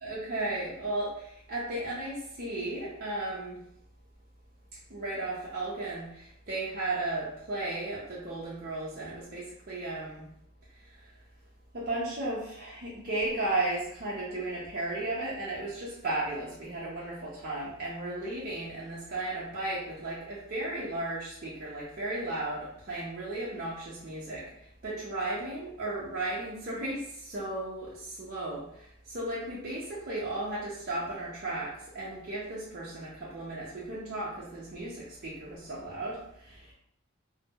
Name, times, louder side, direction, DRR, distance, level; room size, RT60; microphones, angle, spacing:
voice 1, 0.0-3.6 4.9-10.2 10.8-11.1 11.7-36.7, right 2 dB, 45° right, -8 dB, 0.6 m, -35 dB
2.6 x 2.0 x 3.5 m, 0.73 s
head